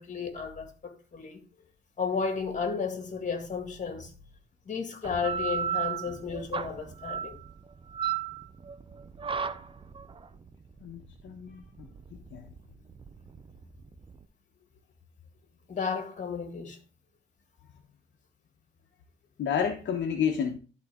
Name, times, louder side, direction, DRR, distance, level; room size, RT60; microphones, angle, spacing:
voice 1, 0.0-1.4 2.0-4.1 4.7-7.4 15.7-16.8, left 5 dB, 40° left, 2.0 m, -33 dB
sound 1, 5.0-14.2, right 7 dB, 25° right, 0.6 m, -35 dB
voice 2, 10.8-12.5 19.4-20.6, left 7 dB, 65° left, 1.0 m, -31 dB
12.0 x 4.1 x 3.6 m
cardioid pair, 90°, 20 cm